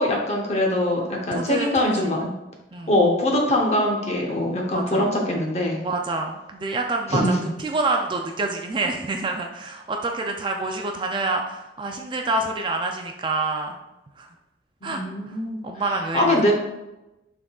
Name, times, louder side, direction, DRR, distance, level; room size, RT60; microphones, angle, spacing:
voice 1, 0.0-2.3 2.9-5.8 7.1-7.3 14.8-15.6 16.1-16.5, left 1 dB, 35° left, 0 dB, 0.8 m, -22 dB
voice 2, 1.3-2.1 2.7-2.9 4.7-5.1 5.8-13.8 14.2-14.3 14.8-15.4 15.6-16.5, right 3 dB, 25° right, 3 dB, 0.3 m, -27 dB
5.9 x 3.7 x 2.3 m, 0.97 s
head